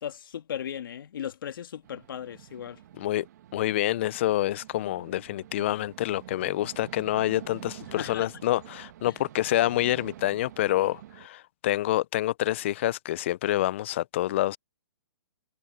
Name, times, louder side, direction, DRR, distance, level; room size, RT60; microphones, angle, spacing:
voice 1, 0.0-2.8 8.0-8.3 9.1-9.2, left 9 dB, 60° left, 2.1 m, -37 dB
sound 1, 1.8-11.3, right 12 dB, 45° right, 1.7 m, -48 dB
voice 2, 3.5-14.6, left 14 dB, 30° left, 0.3 m, -27 dB
hypercardioid pair, 160°, 13 cm